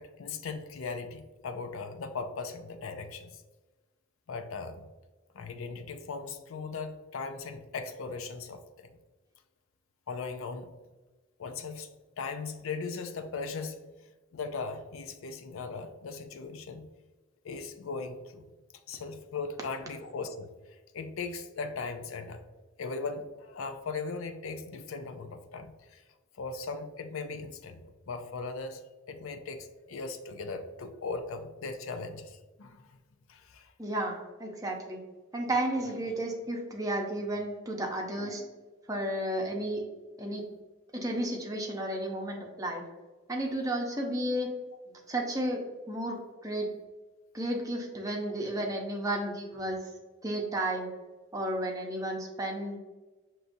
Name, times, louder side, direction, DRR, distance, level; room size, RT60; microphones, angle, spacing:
voice 1, 0.0-3.4 4.3-4.9 5.3-8.9 10.1-10.7 11.4-11.9 12.2-13.8 14.3-16.9 17.4-18.5 18.9-22.5 22.8-26.0 26.3-28.8 29.1-33.0 33.3-33.7, left 4 dB, 80° left, 8 dB, 0.5 m, -38 dB
voice 2, 33.8-35.0 35.3-38.4 38.9-39.8 40.2-40.4 40.9-42.8 43.3-44.5 45.1-45.6 45.9-46.7 47.3-49.8 50.2-50.9 51.3-52.8, right 1 dB, 15° right, 0 dB, 0.7 m, -32 dB
6.6 x 3.0 x 2.6 m, 1.3 s
head